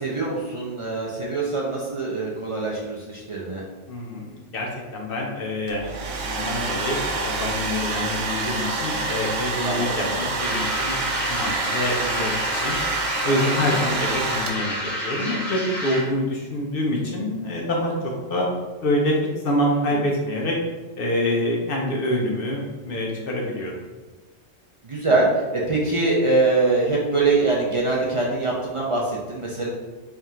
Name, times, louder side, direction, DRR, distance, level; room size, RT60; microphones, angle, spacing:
voice 1, 0.0-3.6 8.0-8.1 9.6-9.8 10.1-10.2 13.7-13.8 19.7-20.0 24.8-29.7, right 3 dB, 55° right, -4 dB, 0.3 m, -23 dB
voice 2, 3.9-5.9 6.2-12.8 13.2-18.5 18.8-19.2 19.4-20.6 21.0-23.8, left 1 dB, 55° left, -1 dB, 0.7 m, -26 dB
Domestic sounds home sounds, 5.7-14.9, right 3 dB, 75° right, 0.9 m, -28 dB
sound 1, 10.4-16.2, equal, ahead, 0.7 m, -29 dB
3.5 x 2.4 x 4.2 m, 1.2 s
omnidirectional pair, 1.3 m